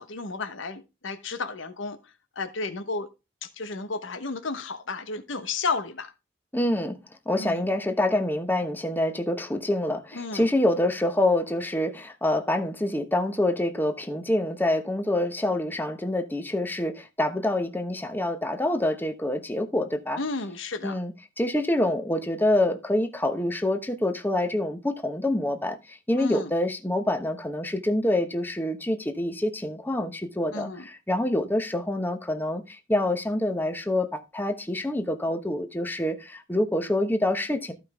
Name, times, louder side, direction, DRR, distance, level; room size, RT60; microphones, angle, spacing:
voice 1, 0.0-2.0 2.4-3.1 3.4-6.1 7.4-7.7 10.1-10.5 20.2-21.0 26.1-26.5 30.5-30.8, left 3 dB, 80° left, 1.1 m, -32 dB
voice 2, 6.5-7.0 7.3-20.2 20.8-37.7, left 1 dB, 10° left, 1.0 m, -26 dB
14.5 x 5.3 x 3.5 m
head